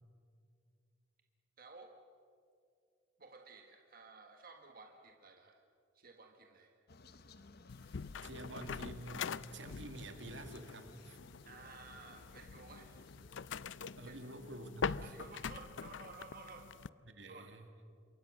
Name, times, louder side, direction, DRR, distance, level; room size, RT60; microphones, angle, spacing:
voice 1, 1.6-1.9 3.2-5.6 5.9-6.7 11.4-12.9 14.0-14.1 15.0-16.7 17.3-17.5, right 3 dB, 50° right, 3 dB, 1.7 m, -54 dB
sound 1, 6.9-13.7, left 2 dB, 55° left, 1.1 m, -59 dB
sound 2, 7.7-16.9, left 6 dB, 75° left, 0.5 m, -44 dB
voice 2, 7.8-11.2 13.9-15.1 17.0-17.7, right 1 dB, 70° right, 6 dB, 2.3 m, -49 dB
27.0 x 23.0 x 6.6 m, 2.3 s
head